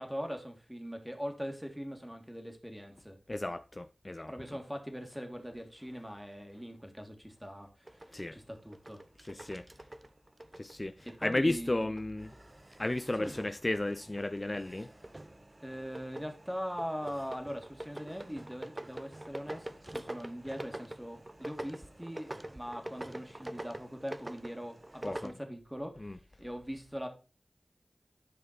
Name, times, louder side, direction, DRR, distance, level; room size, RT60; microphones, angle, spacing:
voice 1, 0.0-3.2 4.3-9.0 9.4-9.6 11.0-11.9 13.2-13.4 15.6-26.1 26.4-27.1, equal, 5° right, 2.1 m, -41 dB
voice 2, 3.3-4.3 8.1-8.4 9.3-9.6 10.6-10.9 11.2-12.3 12.8-14.9 25.0-25.3 26.0-26.2, left 1 dB, 30° left, 0.4 m, -33 dB
sound 1, 7.9-11.4 11.7-25.3, right 1 dB, 30° right, 0.8 m, -46 dB
11.0 x 5.0 x 4.2 m
wide cardioid pair, 50°, 0 cm